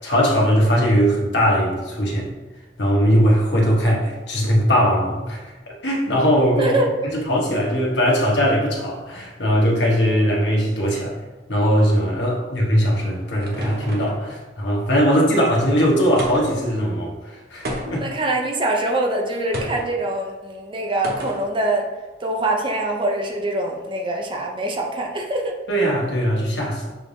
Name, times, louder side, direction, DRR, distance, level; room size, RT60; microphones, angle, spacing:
voice 1, 0.0-2.3 2.8-6.7 7.1-11.1 11.5-18.0 25.7-26.9, equal, 85° left, -2 dB, 1.1 m, -20 dB
voice 2, 6.6-6.9 17.9-21.8 22.2-25.5, right 2 dB, 30° right, 1 dB, 0.6 m, -24 dB
sound 1, 12.7-14.3 16.2-16.7 17.6-18.2 19.5-19.9 21.0-21.5, equal, 60° right, 0.8 m, -31 dB
6.1 x 3.3 x 2.6 m, 1.2 s
head